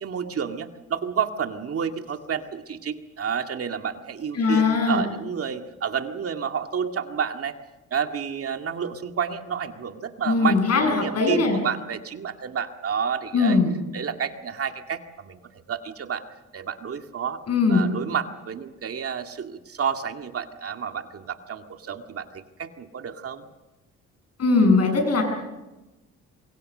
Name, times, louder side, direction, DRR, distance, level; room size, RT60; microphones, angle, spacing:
voice 1, 0.0-7.6 7.9-13.6 13.9-16.2 16.5-17.4 17.7-23.5, right 7 dB, 50° right, 6 dB, 2.1 m, -30 dB
voice 2, 4.3-5.0 10.3-11.6 13.3-13.7 17.5-17.8 24.4-25.2, left 4 dB, 55° left, 5 dB, 7.9 m, -20 dB
27.5 x 23.0 x 6.7 m, 1.1 s
cardioid pair, 90°, 30 cm